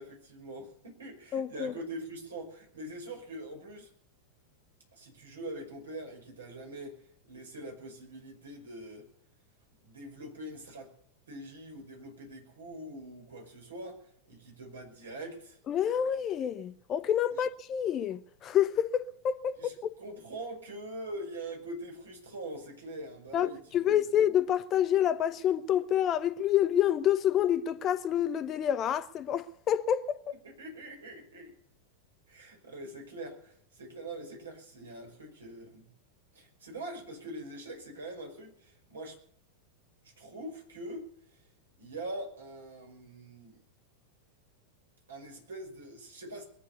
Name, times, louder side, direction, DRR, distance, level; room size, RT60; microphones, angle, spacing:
voice 1, 0.0-3.9 4.9-9.1 9.8-10.9 11.3-14.0 14.3-15.6 19.6-19.7 20.0-23.9 30.4-31.5 32.3-35.9 36.3-39.2 40.0-41.4 41.8-43.6 45.1-46.4, right 1 dB, 70° right, 5.7 m, -43 dB
voice 2, 1.3-1.7 15.7-19.9 23.3-30.4, left 10 dB, 30° left, 0.8 m, -28 dB
21.5 x 9.5 x 6.9 m
figure-of-eight pair, 90°, 0 cm